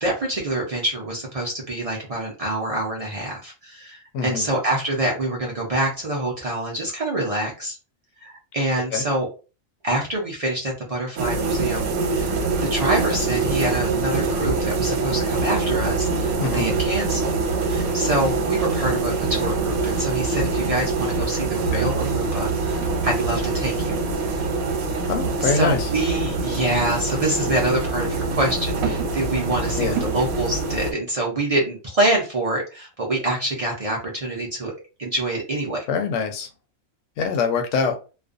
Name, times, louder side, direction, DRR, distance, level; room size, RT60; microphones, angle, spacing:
voice 1, 0.0-7.8 8.2-9.3 9.8-12.3 12.6-17.4 17.6-24.0 25.4-34.7 35.0-35.9, right 1 dB, 55° right, 0.4 m, -26 dB
voice 2, 4.1-4.5 8.9-9.0 16.4-16.7 21.7-21.9 25.1-25.9 29.8-30.0 35.9-36.5 37.2-37.9, left 5 dB, 70° left, 0.8 m, -24 dB
sound 1, 11.2-30.9, right 3 dB, 85° right, 1.1 m, -24 dB
2.4 x 2.2 x 2.4 m
omnidirectional pair, 1.5 m